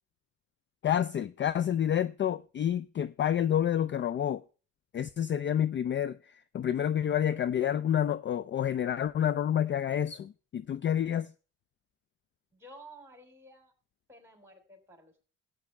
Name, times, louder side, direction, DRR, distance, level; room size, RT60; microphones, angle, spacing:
voice 1, 0.8-4.4 4.9-11.3, left 10 dB, 35° left, 0.4 m, -29 dB
voice 2, 12.5-13.7 14.1-15.2, right 1 dB, 5° right, 3.4 m, -53 dB
14.0 x 8.4 x 3.3 m
cardioid pair, 95°, 32 cm